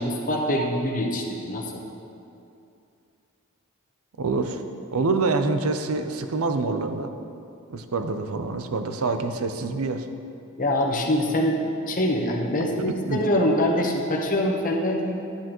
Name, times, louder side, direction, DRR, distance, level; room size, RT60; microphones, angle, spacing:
voice 1, 0.0-1.7 10.6-15.2, left 1 dB, 40° left, 0 dB, 1.0 m, -24 dB
voice 2, 4.2-4.6 4.9-7.1 7.7-10.1 12.9-13.2, right 3 dB, 80° right, 8 dB, 0.6 m, -26 dB
11.5 x 8.6 x 3.0 m, 2.7 s
head